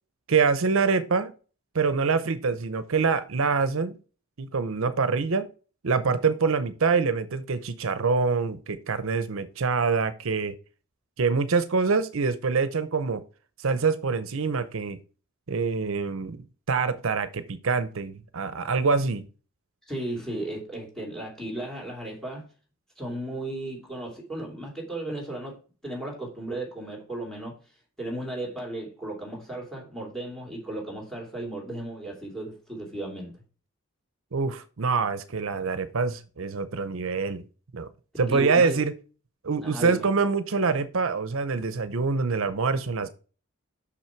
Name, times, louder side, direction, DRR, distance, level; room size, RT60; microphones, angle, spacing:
voice 1, 0.3-1.3 1.7-4.0 4.4-5.5 5.8-10.5 11.2-13.2 13.6-15.0 15.5-19.3 34.3-37.4 37.7-37.9 38.2-38.9 39.4-43.1, right 4 dB, 70° right, 0.7 m, -25 dB
voice 2, 19.9-22.4 23.0-27.6 28.0-33.3 38.2-38.8 39.6-40.1, right 1 dB, 5° left, 2.7 m, -35 dB
6.3 x 6.0 x 4.5 m
head